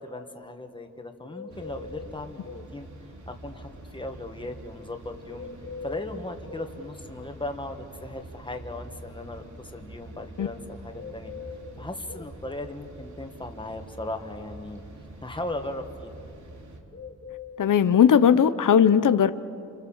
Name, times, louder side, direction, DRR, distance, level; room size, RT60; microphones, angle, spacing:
voice 1, 0.0-2.9 3.3-5.5 5.8-11.3 11.8-14.8 15.2-16.2, left 2 dB, 15° left, 5 dB, 1.8 m, -37 dB
sound 1, 1.3-2.7 5.3-6.7 10.9-12.3 16.9-18.3, left 5 dB, 40° left, 1.0 m, -42 dB
sound 2, 1.5-16.8, right 2 dB, 70° right, 3.1 m, -45 dB
voice 2, 17.6-19.3, left 8 dB, 85° left, 12 dB, 0.8 m, -18 dB
30.0 x 26.5 x 7.4 m, 2.5 s
wide cardioid pair, 150°, 31 cm